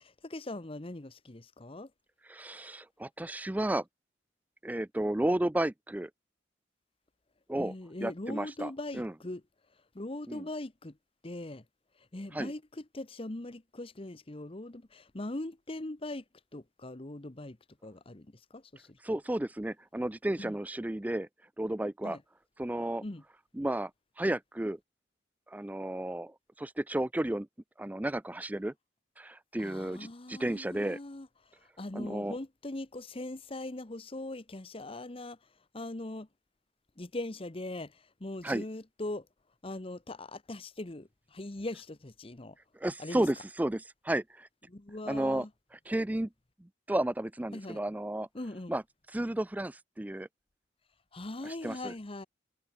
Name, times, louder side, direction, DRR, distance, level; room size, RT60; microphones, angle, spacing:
voice 1, 0.0-1.9 7.5-9.4 9.9-11.0 11.2-11.6 12.0-16.2 16.5-17.6 17.8-19.2 20.4-20.6 22.0-22.2 23.0-23.2 29.6-35.5 35.7-36.3 37.0-39.3 39.6-42.6 43.0-43.3 44.7-45.5 47.5-47.8 48.3-48.7 51.1-52.3, left 2 dB, 30° left, 1.0 m, -41 dB
voice 2, 2.3-3.8 4.6-6.1 7.5-7.7 8.0-9.1 10.3-10.4 12.3-12.5 19.0-21.3 21.6-22.2 22.6-23.0 23.6-23.9 24.2-24.8 25.5-27.5 27.8-28.7 29.2-31.0 31.9-32.3 38.4-38.6 42.8-44.5 45.1-45.4 45.7-46.3 46.9-48.3 48.7-48.8 49.1-50.3 51.4-51.9, right 1 dB, 10° right, 0.4 m, -32 dB
head